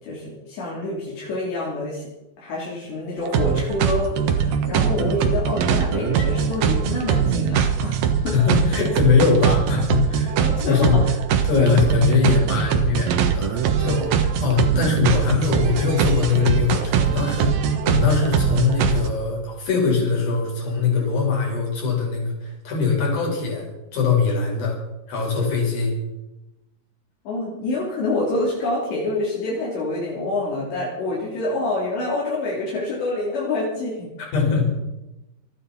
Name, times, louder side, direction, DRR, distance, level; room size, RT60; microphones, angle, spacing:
voice 1, 0.0-2.1 2.4-8.3 10.4-11.0 27.3-34.1, left 2 dB, 75° left, -5 dB, 5.5 m, -27 dB
sound 1, 3.2-19.1, right 7 dB, 65° right, 2.8 m, -21 dB
voice 2, 8.3-11.0 11.4-24.8 25.1-25.9 34.2-34.7, left 5 dB, 55° left, -1 dB, 6.8 m, -22 dB
27.0 x 10.5 x 4.3 m, 0.97 s
omnidirectional pair, 5.1 m